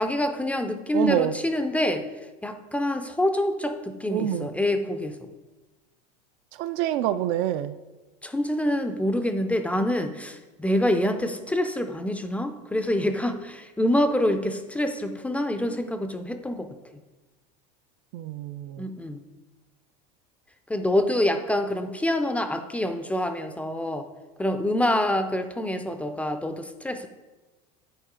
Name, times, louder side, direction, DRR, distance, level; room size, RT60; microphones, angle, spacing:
voice 1, 0.0-2.1 2.4-5.1 8.2-16.7 18.8-19.2 20.7-24.1 24.4-27.1, left 1 dB, 5° left, 7 dB, 0.4 m, -26 dB
voice 2, 0.9-1.4 4.1-4.5 6.6-7.7 18.1-18.9, right 11 dB, 60° right, 11 dB, 0.4 m, -26 dB
9.3 x 4.2 x 3.7 m, 1.2 s
supercardioid pair, 120°, 21 cm